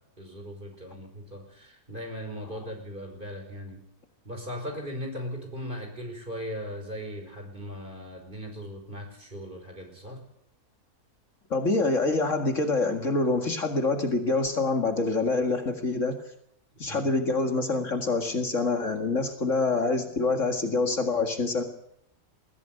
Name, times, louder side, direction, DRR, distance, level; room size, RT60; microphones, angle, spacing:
voice 1, 0.0-3.8 4.3-10.2 16.9-17.1, equal, 30° right, 3 dB, 5.4 m, -38 dB
voice 2, 11.5-16.2 16.8-21.6, left 3 dB, 50° left, 5 dB, 2.3 m, -26 dB
21.0 x 15.5 x 9.2 m, 0.74 s
omnidirectional pair, 1.7 m